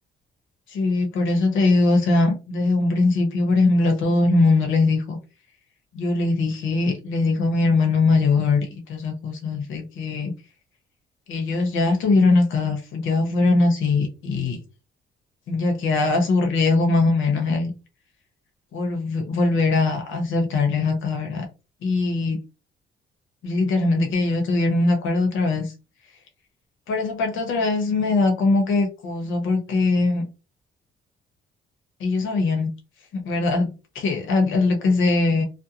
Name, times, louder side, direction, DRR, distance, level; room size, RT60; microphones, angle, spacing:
voice 1, 0.7-5.2 5.9-10.3 11.3-14.6 15.5-17.7 18.7-21.5 21.8-22.4 23.4-25.7 26.9-30.3 32.0-32.7 33.1-35.4, left 3 dB, 80° left, 0.9 m, -21 dB
2.5 x 2.1 x 2.8 m
cardioid pair, 90°, 20 cm